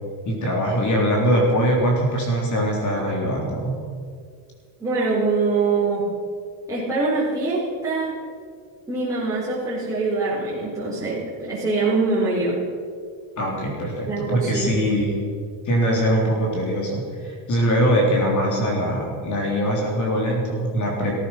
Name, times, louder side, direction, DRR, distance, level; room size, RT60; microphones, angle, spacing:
voice 1, 0.2-3.7 13.4-15.1 15.6-21.2, equal, 35° left, -1 dB, 3.5 m, -22 dB
voice 2, 4.8-6.0 6.7-8.1 8.9-12.5 14.1-14.8, right 3 dB, 5° right, -9 dB, 4.0 m, -23 dB
17.0 x 14.5 x 5.8 m, 2.2 s
cardioid pair, 155°, 49 cm